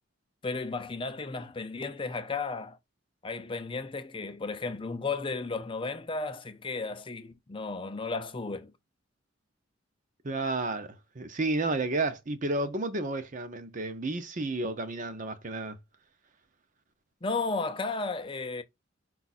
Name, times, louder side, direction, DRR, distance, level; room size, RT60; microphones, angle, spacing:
voice 1, 0.4-2.8 3.2-8.7 17.2-18.6, left 3 dB, 25° left, 0.5 m, -34 dB
voice 2, 10.2-15.8, right 2 dB, 40° right, 0.7 m, -31 dB
5.2 x 2.4 x 4.1 m
head